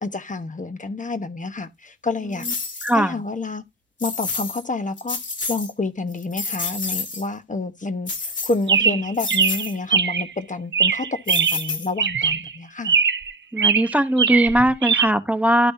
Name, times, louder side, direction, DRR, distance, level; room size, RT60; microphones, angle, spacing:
voice 1, 0.0-2.5 2.9-3.6 4.0-5.2 5.5-13.0, left 3 dB, 45° left, 1.1 m, -28 dB
sound 1, 2.4-2.9 4.0-4.6 5.0-5.7 6.1-7.3 8.1-8.8 9.2-9.7 11.3-12.1, left 4 dB, 90° left, 2.1 m, -29 dB
voice 2, 2.8-3.2 13.5-15.7, right 1 dB, 10° right, 0.9 m, -19 dB
Chirp tweet, 8.7-10.3 10.7-11.7 12.0-12.5 12.8-13.3 13.6-15.1, right 6 dB, 80° right, 0.6 m, -21 dB
12.0 x 5.3 x 2.6 m
wide cardioid pair, 55°, 18 cm